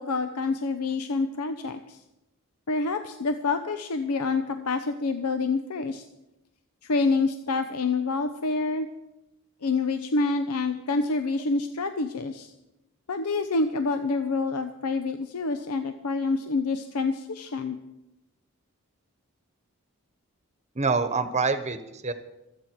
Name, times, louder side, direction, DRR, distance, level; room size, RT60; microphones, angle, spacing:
voice 1, 0.0-2.0 2.7-6.0 6.8-8.9 9.6-12.5 13.1-17.8, left 3 dB, 85° left, 8 dB, 0.8 m, -27 dB
voice 2, 20.7-22.1, right 4 dB, 30° right, 10 dB, 1.1 m, -26 dB
25.5 x 8.8 x 4.6 m, 0.93 s
head